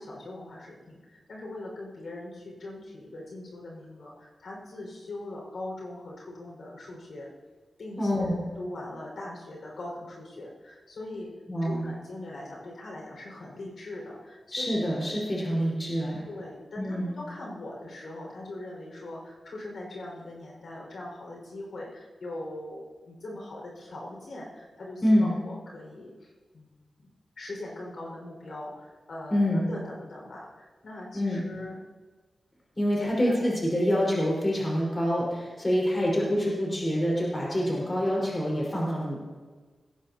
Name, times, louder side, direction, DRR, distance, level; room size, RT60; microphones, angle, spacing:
voice 1, 0.0-7.3 7.8-8.3 8.6-11.3 11.6-14.7 16.3-26.7 27.0-27.1 27.4-31.8 33.0-33.5 36.2-36.3, left 1 dB, 65° left, -2 dB, 5.4 m, -41 dB
voice 2, 8.0-8.4 11.5-11.8 14.5-16.2 16.8-17.1 25.0-25.3 29.3-29.7 31.1-31.4 32.8-39.2, equal, 20° left, -5 dB, 4.9 m, -26 dB
20.5 x 17.5 x 2.9 m, 1.4 s
wide cardioid pair, 155°, 0 cm